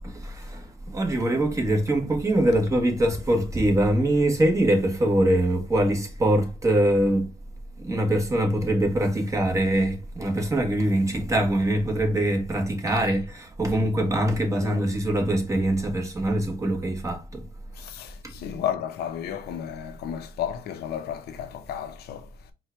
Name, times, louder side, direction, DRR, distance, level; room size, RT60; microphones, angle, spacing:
voice 1, 0.0-7.3 7.8-17.4 18.2-18.3, right 1 dB, 20° right, 1.2 m, -23 dB
voice 2, 17.7-22.3, left 9 dB, 70° left, 0.7 m, -33 dB
4.4 x 2.3 x 4.4 m
cardioid pair, 110°, 17 cm